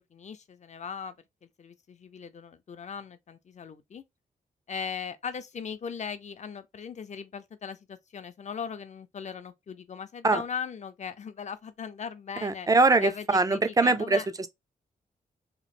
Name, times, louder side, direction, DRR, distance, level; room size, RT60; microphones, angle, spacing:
voice 1, 0.1-1.1 1.4-4.0 4.7-12.7 13.0-14.3, left 6 dB, 45° left, 0.6 m, -39 dB
voice 2, 12.4-14.5, right 3 dB, 20° right, 0.5 m, -23 dB
3.0 x 2.1 x 4.1 m
cardioid pair, 90°, 16 cm